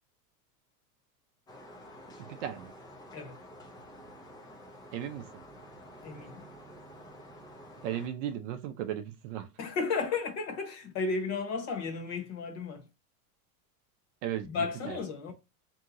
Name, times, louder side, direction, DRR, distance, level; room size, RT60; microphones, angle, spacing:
sound 1, 1.5-8.1, equal, 10° left, 0.4 m, -50 dB
voice 1, 2.2-2.8 4.9-5.4 7.8-9.5 14.2-15.0, right 10 dB, 55° right, 0.6 m, -36 dB
voice 2, 6.0-6.4 9.6-12.9 14.4-15.3, left 4 dB, 35° left, 1.0 m, -34 dB
3.6 x 2.8 x 3.8 m
supercardioid pair, 155°, 45 cm